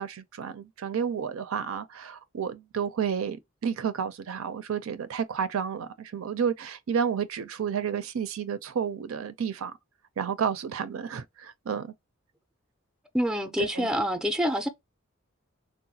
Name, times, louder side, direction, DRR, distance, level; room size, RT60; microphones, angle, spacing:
voice 1, 0.0-3.4 3.6-9.7 10.2-11.9 13.6-13.9, right 7 dB, 75° right, 0.4 m, -31 dB
voice 2, 13.1-14.7, equal, 5° right, 0.4 m, -26 dB
3.8 x 2.1 x 2.7 m
head